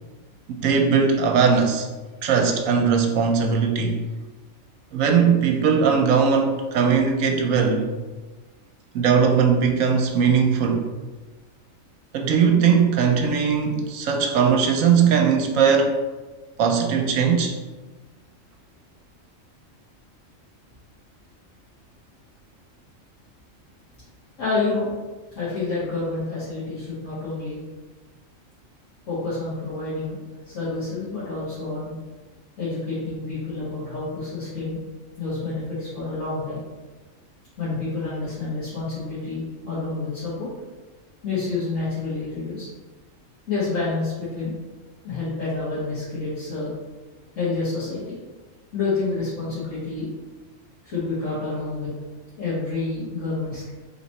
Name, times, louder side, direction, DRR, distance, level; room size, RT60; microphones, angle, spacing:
voice 1, 0.6-1.9 2.2-4.0 4.9-7.9 8.9-10.8 12.1-15.9 16.6-17.5, right 6 dB, 80° right, 3 dB, 1.0 m, -19 dB
voice 2, 24.4-24.9 25.3-27.6 29.1-30.2 30.4-31.9 32.6-34.8 35.2-36.6 37.6-40.5 41.2-42.7 43.5-44.6 45.0-46.7 47.3-48.2 48.7-50.1 50.8-51.9 52.4-53.7, left 3 dB, 75° left, -11 dB, 1.7 m, -28 dB
3.9 x 3.0 x 4.1 m, 1.3 s
omnidirectional pair, 1.4 m